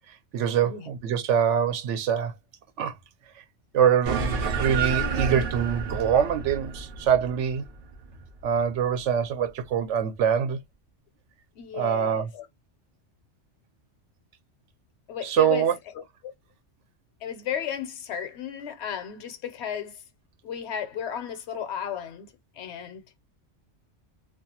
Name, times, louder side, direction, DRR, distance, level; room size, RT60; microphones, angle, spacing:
voice 1, 0.1-2.3 2.8-2.9 3.4-3.5 3.7-4.2 4.6-7.7 8.4-10.6 11.7-12.3 15.2-15.7, right 8 dB, 90° right, 0.9 m, -24 dB
voice 2, 0.6-0.9 11.6-12.5 15.1-15.7 15.9-16.3 17.2-20.0 20.4-23.0, left 8 dB, 70° left, 0.9 m, -34 dB
sound 1, 4.1-8.8, right 5 dB, 55° right, 0.7 m, -30 dB
2.4 x 2.3 x 2.7 m
omnidirectional pair, 1.2 m